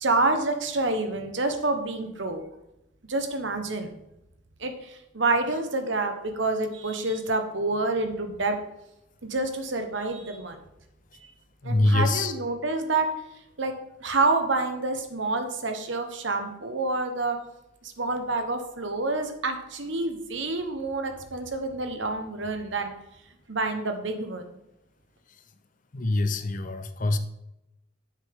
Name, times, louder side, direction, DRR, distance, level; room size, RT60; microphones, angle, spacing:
voice 1, 0.0-2.4 3.1-4.0 4.6-8.6 9.2-10.6 11.6-13.1 13.6-13.7 14.0-17.4 17.8-22.9 23.5-24.4, right 3 dB, 65° right, 6 dB, 1.1 m, -28 dB
voice 2, 11.6-12.3 25.9-27.2, left 2 dB, 40° left, 10 dB, 0.7 m, -24 dB
9.4 x 7.2 x 3.6 m, 0.88 s
head